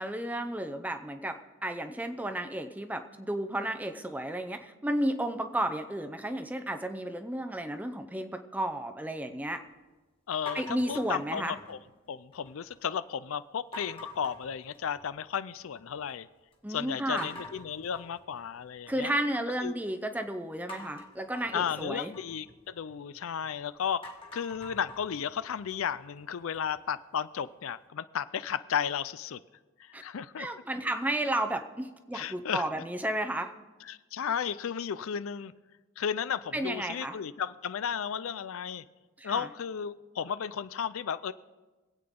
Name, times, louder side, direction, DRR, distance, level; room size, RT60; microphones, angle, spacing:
voice 1, 0.0-9.6 10.5-11.6 16.6-17.3 18.9-22.1 29.9-30.0 30.4-33.5 36.5-37.2 39.2-39.5, right 1 dB, 5° right, 7 dB, 0.6 m, -33 dB
voice 2, 10.3-11.8 12.1-16.3 16.7-19.1 19.6-19.8 21.5-24.0 24.3-29.4 29.8-30.5 32.1-32.7 33.9-35.5 36.0-38.8 39.2-41.3, left 7 dB, 70° left, 15 dB, 0.4 m, -34 dB
sound 1, 10.5-11.9 12.3-12.8 13.7-15.3 15.6-16.1 16.5-16.6 17.2-19.3 20.7-23.5 23.9-26.8, left 1 dB, 25° left, 1.6 m, -46 dB
25.0 x 8.7 x 3.7 m, 1.2 s
head